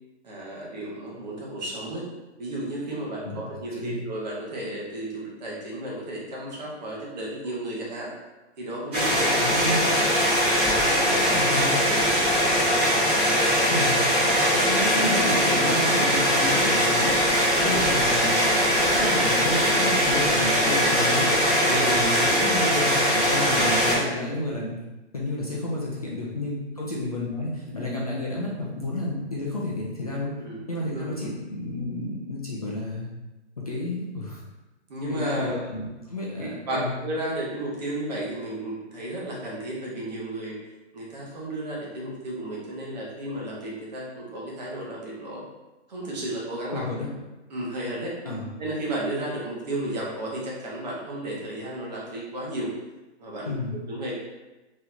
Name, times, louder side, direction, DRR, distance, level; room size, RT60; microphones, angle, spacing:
voice 1, 0.2-2.0 2.4-8.1 8.6-10.1 10.6-12.1 12.6-12.9 13.7-15.3 17.5-17.8 18.9-19.0 21.6-21.9 26.7-26.8 30.4-31.3 34.9-35.6 36.4-40.6 40.9-45.4 45.9-46.8 47.5-48.1 48.6-52.7 53.2-53.5 53.9-54.1, right 1 dB, 35° right, -4 dB, 0.9 m, -33 dB
sound 1, 8.9-24.0, equal, 10° right, 0.6 m, -21 dB
voice 2, 9.4-9.9 11.3-11.9 13.7-14.0 14.6-17.2 17.6-21.3 21.7-24.8 25.1-30.4 30.7-33.1 33.6-34.4 35.1-36.9 46.7-47.1 48.2-48.5 53.5-53.8, left 2 dB, 35° left, -5 dB, 0.4 m, -31 dB
3.8 x 3.0 x 2.5 m, 1.1 s
hypercardioid pair, 165°, 35 cm